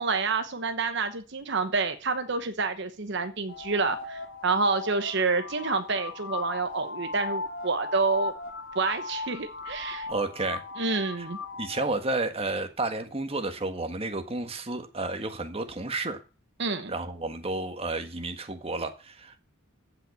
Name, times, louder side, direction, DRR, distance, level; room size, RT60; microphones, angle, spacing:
voice 1, 0.0-8.3 8.7-10.1 10.8-11.4 16.6-16.9, right 4 dB, 60° right, 1.1 m, -28 dB
sound 1, 3.5-11.9, left 3 dB, 80° left, 2.5 m, -37 dB
voice 2, 10.1-11.3 11.6-16.2 16.9-19.4, right 2 dB, 30° right, 1.6 m, -32 dB
15.0 x 5.8 x 8.3 m
head